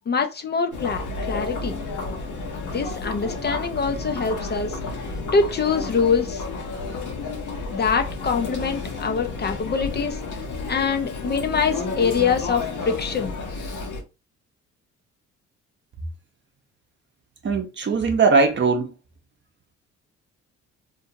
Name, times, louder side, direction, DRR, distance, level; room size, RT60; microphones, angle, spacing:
voice 1, 0.1-1.0 1.3-1.8 2.7-4.8 5.3-6.4 7.7-10.2 10.7-13.3, left 5 dB, 35° left, 0.4 m, -24 dB
Chatter, 0.7-14.0, left 3 dB, 75° left, 0.9 m, -31 dB
voice 2, 17.4-18.9, right 4 dB, 40° right, 0.7 m, -20 dB
2.5 x 2.4 x 2.7 m
cardioid pair, 90°, 30 cm